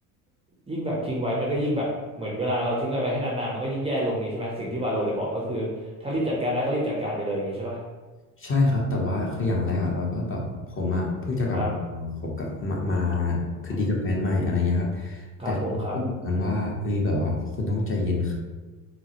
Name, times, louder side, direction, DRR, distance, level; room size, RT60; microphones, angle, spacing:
voice 1, 0.7-1.9 2.2-5.7 6.0-7.8 11.5-11.7 15.4-15.9, equal, 15° right, -4 dB, 0.5 m, -27 dB
voice 2, 8.4-10.4 10.7-12.1 12.4-13.4 13.6-18.3, left 2 dB, 25° left, -1 dB, 0.8 m, -26 dB
3.9 x 2.0 x 2.8 m, 1.3 s
supercardioid pair, 85°, 47 cm